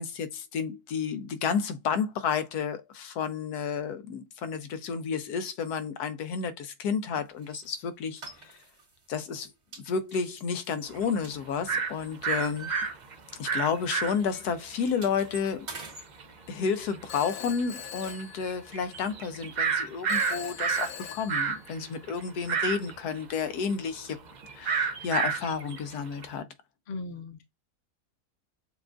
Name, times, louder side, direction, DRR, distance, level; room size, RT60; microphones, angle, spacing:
voice 1, 0.0-8.6 9.1-9.5 9.8-12.7 13.4-15.7 16.5-24.2 24.5-26.5, left 6 dB, 90° left, 1.2 m, -31 dB
sound 1, 7.4-7.7 8.2-8.9 9.2-9.4 9.7-11.8 12.1-13.6 13.8-14.0 14.3-16.1, right 2 dB, 50° right, 2.0 m, -43 dB
sound 2, 10.9-11.0 11.7-11.9 12.2-14.5 14.9-15.0 15.2-15.5 16.2-16.3 16.9-17.0 17.4-17.6 18.0-20.9 21.2-26.2, right 6 dB, 70° right, 0.4 m, -29 dB
Telephone, 17.1-19.0 20.1-22.0, left 8 dB, 70° left, 1.0 m, -43 dB
voice 2, 26.9-27.4, left 3 dB, 50° left, 0.6 m, -37 dB
7.0 x 2.3 x 2.4 m
omnidirectional pair, 1.6 m